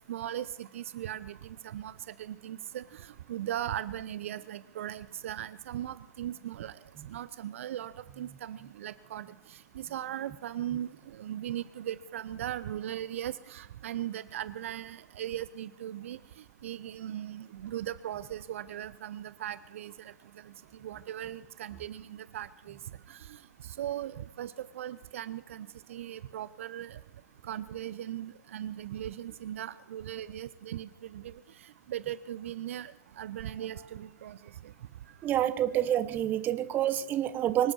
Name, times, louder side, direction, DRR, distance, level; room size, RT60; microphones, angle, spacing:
voice 1, 0.1-1.4 1.6-1.9 2.2-2.8 3.3-6.7 7.1-9.3 9.8-16.2 16.6-20.1 20.8-22.8 23.1-23.2 23.8-27.0 27.5-31.3 31.9-32.9 33.2-34.4, right 11 dB, 50° right, 16 dB, 0.6 m, -38 dB
voice 2, 35.2-37.7, right 11 dB, 20° right, 14 dB, 0.8 m, -28 dB
25.5 x 8.7 x 6.3 m, 0.93 s
figure-of-eight pair, 125°, 9 cm